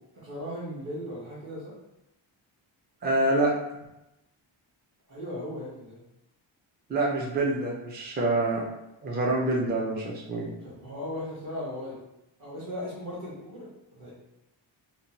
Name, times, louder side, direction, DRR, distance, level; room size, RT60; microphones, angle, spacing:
voice 1, 0.1-1.7 5.1-6.0 10.6-12.0 12.4-13.7 14.0-14.1, left 1 dB, 40° right, -10 dB, 1.1 m, -37 dB
voice 2, 3.0-3.8 6.9-8.7 9.0-10.5, right 2 dB, 20° right, -4 dB, 0.4 m, -26 dB
2.8 x 2.2 x 2.8 m, 0.90 s
wide cardioid pair, 130°, 48 cm